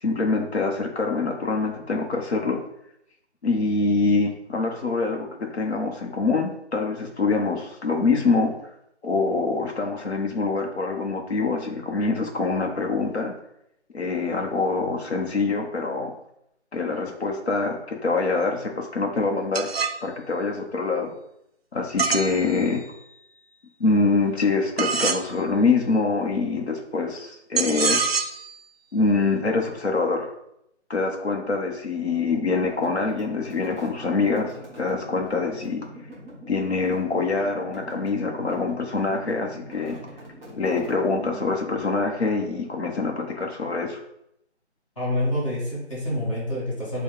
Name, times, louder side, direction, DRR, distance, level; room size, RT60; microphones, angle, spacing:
voice 1, 0.0-2.6 3.4-8.5 9.0-13.3 13.9-16.1 16.7-19.7 20.0-21.1 21.7-22.8 23.8-28.0 28.9-30.3 30.9-35.8 36.5-40.0 40.5-44.0, left 3 dB, 65° left, 1 dB, 0.9 m, -25 dB
sound 1, 19.5-20.0 22.0-23.0 24.8-25.2 27.6-28.5, right 5 dB, 60° right, 0.5 m, -25 dB
sound 2, 32.7-41.7, equal, ahead, 1.0 m, -44 dB
voice 2, 45.0-47.0, left 1 dB, 30° left, -7 dB, 1.6 m, -27 dB
6.2 x 2.3 x 3.6 m, 0.78 s
figure-of-eight pair, 155°, 35 cm